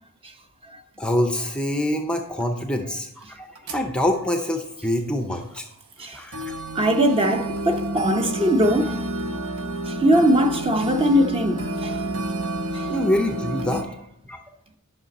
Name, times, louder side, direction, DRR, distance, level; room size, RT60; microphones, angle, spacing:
voice 1, 1.0-5.7 6.1-6.6 12.9-13.9 14.2-14.4, left 1 dB, 5° left, 0.5 m, -25 dB
sound 1, 2.4-2.5 3.5-3.9 4.4-4.5 5.6-5.7 6.3-13.8, right 1 dB, 80° right, 0.8 m, -30 dB
voice 2, 6.7-9.0 9.9-12.0 12.7-12.9, equal, 25° right, 0.8 m, -21 dB
9.5 x 6.0 x 4.1 m
head